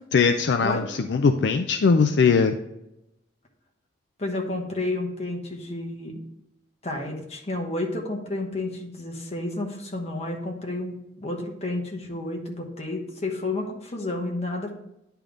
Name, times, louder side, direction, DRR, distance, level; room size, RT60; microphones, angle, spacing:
voice 1, 0.1-2.6, left 5 dB, 65° left, 7 dB, 0.4 m, -20 dB
voice 2, 4.2-6.2 6.8-14.7, left 2 dB, 35° left, 1 dB, 1.2 m, -31 dB
10.0 x 3.5 x 3.8 m, 0.86 s
head